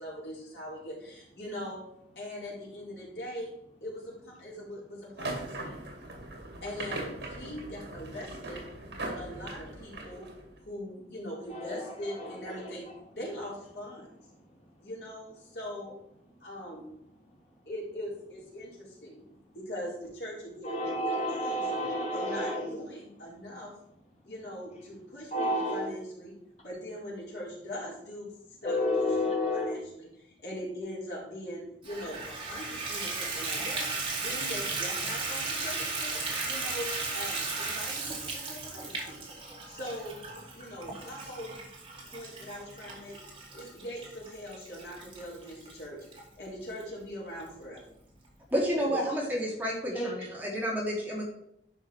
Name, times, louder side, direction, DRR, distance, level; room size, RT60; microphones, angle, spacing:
voice 1, 0.0-1.8 2.2-3.5 3.8-5.9 6.6-8.6 9.0-10.2 10.6-12.9 13.1-14.1 14.8-15.9 16.4-16.9 17.7-19.2 19.5-20.7 21.3-21.6 22.1-23.7 24.2-26.3 26.6-28.3 28.6-29.1 29.5-33.9 34.2-39.2 39.7-40.2 40.5-41.6 42.0-43.2 43.5-46.0 46.4-47.8 48.9-49.0 50.2-50.3, equal, 70° left, -5 dB, 4.2 m, -41 dB
sound 1, 5.2-10.6, right 2 dB, 75° right, 2.4 m, -40 dB
voice 2, 11.5-12.8 14.4-14.5 20.6-22.7 25.3-25.9 28.6-29.9 49.9-50.1, left 1 dB, 40° left, -3 dB, 2.7 m, -31 dB
Water tap faucet / Bathtub (filling or washing), 31.8-46.2 46.8-46.9 47.4-47.5 47.8-47.9, right 3 dB, 30° right, 2.4 m, -36 dB
voice 3, 48.5-51.2, equal, 10° right, -4 dB, 2.4 m, -30 dB
11.0 x 5.6 x 4.6 m, 0.75 s
head